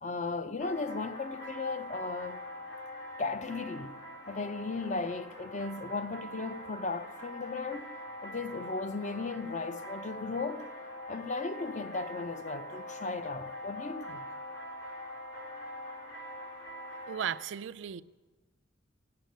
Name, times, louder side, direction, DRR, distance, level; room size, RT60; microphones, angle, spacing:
voice 1, 0.0-2.4 3.2-4.0 4.3-7.9 8.2-10.7 11.1-14.2, left 3 dB, 40° left, 0.6 m, -36 dB
sound 1, 0.6-17.4, left 1 dB, 85° left, 4.2 m, -44 dB
voice 2, 17.1-18.0, right 8 dB, 75° right, 0.4 m, -35 dB
17.0 x 6.9 x 9.2 m
head